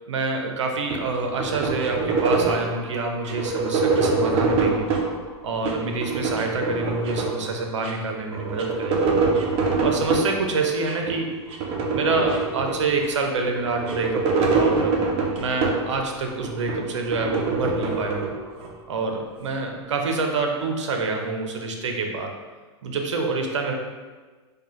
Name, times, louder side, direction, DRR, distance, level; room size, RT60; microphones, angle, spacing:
voice 1, 0.1-4.9 5.4-9.1 9.8-11.4 11.9-15.0 15.4-18.3 18.9-22.4 22.8-23.8, right 3 dB, 90° right, 2 dB, 0.6 m, -27 dB
sound 1, 0.9-2.8 3.2-5.1 5.5-7.5 7.8-7.9 8.2-10.3 10.8-11.1 11.5-13.1 13.6-16.0 16.4-18.7, right 4 dB, 40° right, 0.7 m, -24 dB
4.4 x 2.3 x 3.1 m, 1.4 s
hypercardioid pair, 120°, 15 cm